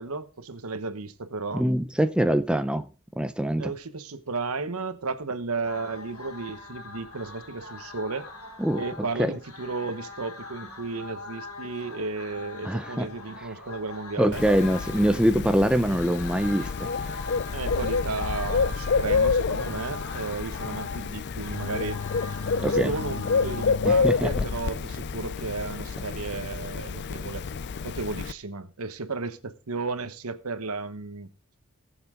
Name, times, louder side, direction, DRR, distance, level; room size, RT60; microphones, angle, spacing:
voice 1, 0.0-1.7 3.6-8.3 8.7-14.4 17.4-22.0 22.7-27.4 27.8-31.3, right 3 dB, 75° right, 1.1 m, -34 dB
voice 2, 1.5-2.8 3.2-3.7 8.6-8.8 9.2-9.3 12.6-13.1 14.2-16.9 22.6-22.9 23.8-24.5, equal, 5° right, 0.5 m, -24 dB
sound 1, 5.6-23.8, left 4 dB, 80° left, 2.6 m, -41 dB
Bird, 14.3-28.3, left 5 dB, 50° left, 0.5 m, -28 dB
19.0 x 7.1 x 3.7 m
head